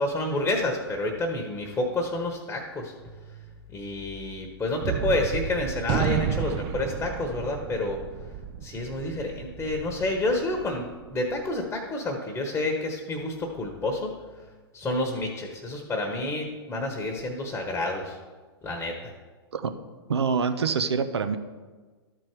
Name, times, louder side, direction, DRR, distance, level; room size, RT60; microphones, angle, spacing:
voice 1, 0.0-2.9 3.7-8.0 8.6-14.1 14.7-18.2 18.6-18.9, left 2 dB, 10° left, 2 dB, 1.1 m, -29 dB
Gunshot gunfire, 4.8-11.4, right 9 dB, 35° right, 0.5 m, -32 dB
voice 2, 20.1-21.4, right 5 dB, 85° right, 9 dB, 0.7 m, -25 dB
12.5 x 4.6 x 4.6 m, 1.4 s
hypercardioid pair, 115°, 13 cm